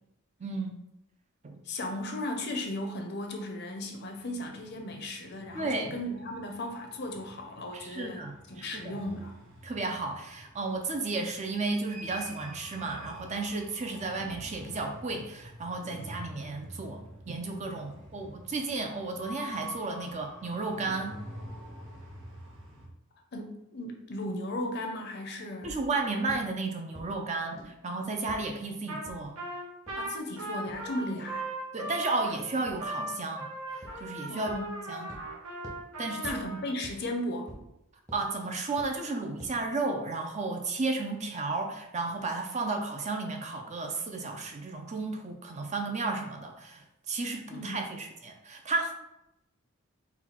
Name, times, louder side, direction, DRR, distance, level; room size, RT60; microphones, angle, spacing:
voice 1, 0.4-0.7 1.4-1.6 5.5-5.9 7.7-9.0 9.6-21.1 25.6-29.3 31.7-34.5 34.9-35.1 36.0-36.6 38.1-48.9, right 3 dB, 30° right, 3 dB, 0.4 m, -33 dB
voice 2, 1.6-9.3 23.3-25.8 30.0-31.5 34.3-34.8 36.2-37.5 47.5-47.9, left 1 dB, 50° left, 3 dB, 0.6 m, -36 dB
sound 1, 4.1-22.9, equal, 60° right, 1.1 m, -47 dB
sound 2, 25.6-25.8 26.3-26.4 26.9-27.0 27.6-27.7 28.3-28.4 29.1-29.2 29.9-30.0 30.7-30.8 32.7-32.8 33.8-33.9 34.5-34.6 35.1-35.2 35.6-35.8 36.2-36.3 36.8-36.9 37.5-37.6 38.1-38.2 38.8-38.9 39.4-39.5, equal, 15° right, 0.8 m, -44 dB
Trumpet, 28.9-29.1 29.4-36.7, right 1 dB, 80° right, 1.1 m, -38 dB
3.9 x 2.4 x 4.3 m, 0.84 s
head